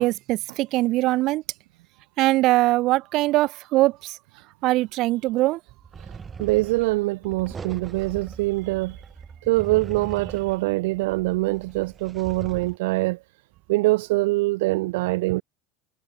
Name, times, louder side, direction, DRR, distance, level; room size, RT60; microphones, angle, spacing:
voice 1, 0.0-1.4 2.2-4.2 4.6-5.6, right 18 dB, 50° right, 2.7 m, -22 dB
sound 1, 5.8-12.8, right 5 dB, 20° right, 6.9 m, -40 dB
voice 2, 6.4-9.0 9.5-13.2 13.7-15.4, right 21 dB, 80° right, 1.9 m, -24 dB
supercardioid pair, 135°, 0 cm